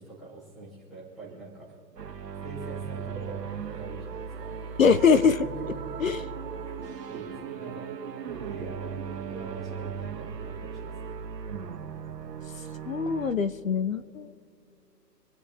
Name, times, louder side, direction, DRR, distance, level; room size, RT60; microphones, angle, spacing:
voice 1, 0.0-1.7 2.4-4.5 5.4-6.2 6.7-6.8 7.1-7.9 8.3-9.0 9.2-11.2, right 3 dB, ahead, -9 dB, 1.0 m, -44 dB
sound 1, 2.0-13.3, right 6 dB, 75° right, 1.8 m, -38 dB
sound 2, 3.1-11.4, right 8 dB, 30° right, 2.4 m, -43 dB
voice 2, 4.8-5.5 6.0-6.2 12.9-14.3, left 6 dB, 55° left, 14 dB, 0.8 m, -22 dB
27.5 x 9.7 x 3.4 m, 2.4 s
hypercardioid pair, 170°, 49 cm